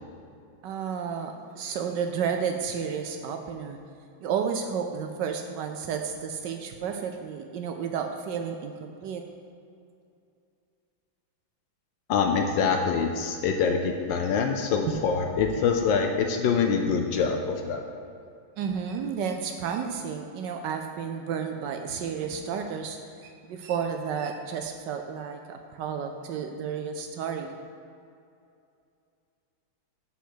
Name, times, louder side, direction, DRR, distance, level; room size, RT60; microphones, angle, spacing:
voice 1, 0.6-3.8 4.2-9.2 14.9-15.0 18.6-27.6, right 7 dB, 80° right, 5 dB, 1.0 m, -32 dB
voice 2, 12.1-17.9, left 5 dB, 70° left, 4 dB, 1.2 m, -25 dB
6.1 x 5.7 x 6.2 m, 2.5 s
omnidirectional pair, 2.4 m